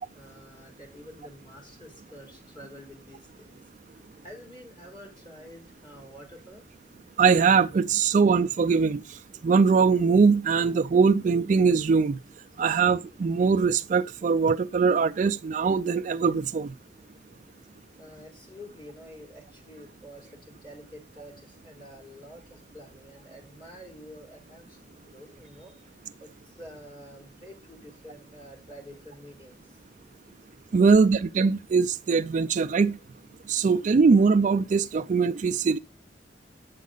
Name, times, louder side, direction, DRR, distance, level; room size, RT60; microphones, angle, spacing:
voice 1, 0.0-3.6 3.9-6.6 18.0-25.8 26.2-29.8, equal, 30° left, 4.6 m, -48 dB
voice 2, 7.2-9.2 9.4-12.2 12.6-16.7 30.7-33.0 33.5-35.8, right 5 dB, 45° right, 0.3 m, -22 dB
9.3 x 7.2 x 3.9 m
head